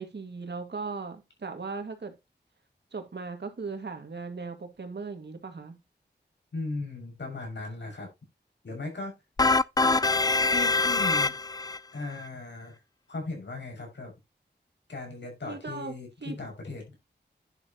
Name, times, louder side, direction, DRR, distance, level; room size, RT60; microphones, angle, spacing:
voice 1, 0.0-2.1 2.9-5.8 15.5-15.9 16.2-16.4, right 4 dB, 70° right, 2.3 m, -38 dB
voice 2, 6.5-8.1 8.6-9.1 10.5-11.3 11.9-12.8 13.1-14.1 14.9-16.8, left 3 dB, 75° left, 6.4 m, -37 dB
sound 1, 9.4-11.8, left 3 dB, 20° left, 0.4 m, -24 dB
10.5 x 7.5 x 3.0 m
wide cardioid pair, 55°, 18 cm